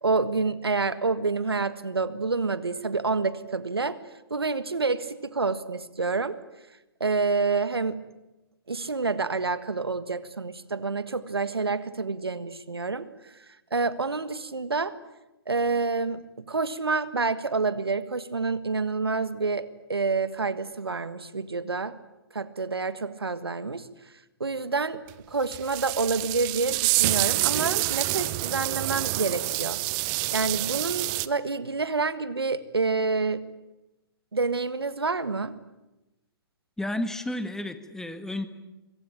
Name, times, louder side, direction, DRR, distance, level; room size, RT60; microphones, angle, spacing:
voice 1, 0.0-4.0 4.3-6.3 7.0-8.0 8.7-13.1 13.7-14.9 15.5-16.2 16.5-22.0 22.3-23.9 24.4-25.0 25.3-29.8 30.3-33.4 34.3-35.6, right 4 dB, 85° right, 14 dB, 1.6 m, -28 dB
sound 1, 25.1-25.2 25.5-31.3, right 21 dB, 30° right, 1.0 m, -27 dB
voice 2, 36.8-38.5, left 1 dB, 5° left, 9 dB, 1.7 m, -32 dB
25.0 x 23.0 x 8.8 m, 1.0 s
figure-of-eight pair, 120°, 13 cm